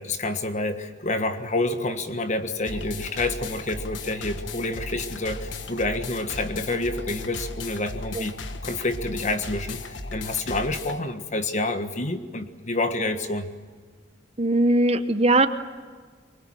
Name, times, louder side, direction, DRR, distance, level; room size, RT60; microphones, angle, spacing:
voice 1, 0.0-13.5, left 2 dB, 40° left, 8 dB, 1.5 m, -28 dB
sound 1, 2.6-11.0, left 3 dB, 90° left, 1.5 m, -36 dB
voice 2, 14.4-15.5, right 2 dB, 35° right, 10 dB, 0.9 m, -20 dB
23.5 x 21.5 x 9.1 m, 1.5 s
head